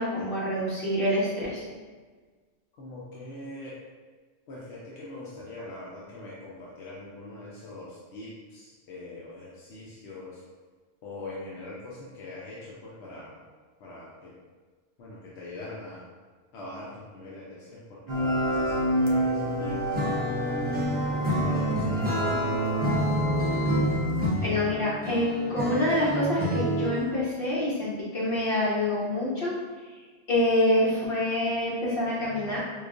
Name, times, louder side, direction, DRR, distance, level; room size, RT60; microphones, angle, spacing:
voice 1, 0.0-1.6 24.4-29.6 30.3-32.6, left 1 dB, 65° left, -8 dB, 1.4 m, -26 dB
voice 2, 2.8-3.8 4.5-10.4 11.0-13.4 13.8-14.3 15.0-16.0 16.5-20.0 20.7-22.5, left 2 dB, 85° left, -6 dB, 0.9 m, -42 dB
sound 1, 18.1-24.3, equal, 50° right, 0.7 m, -28 dB
Acoustic guitar / Strum, 19.9-27.1, equal, 15° right, 0.4 m, -29 dB
4.7 x 2.3 x 2.4 m, 1.4 s
omnidirectional pair, 1.1 m